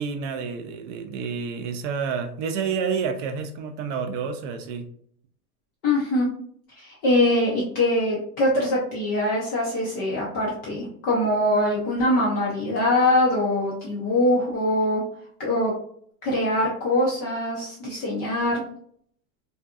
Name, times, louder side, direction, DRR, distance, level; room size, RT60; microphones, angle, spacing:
voice 1, 0.0-4.9, right 6 dB, 50° right, 6 dB, 0.5 m, -29 dB
voice 2, 5.8-6.3 6.8-15.0 15.4-15.7 16.2-18.6, left 1 dB, 25° left, -5 dB, 0.3 m, -23 dB
2.6 x 2.5 x 2.3 m, 0.62 s
hypercardioid pair, 120°, 48 cm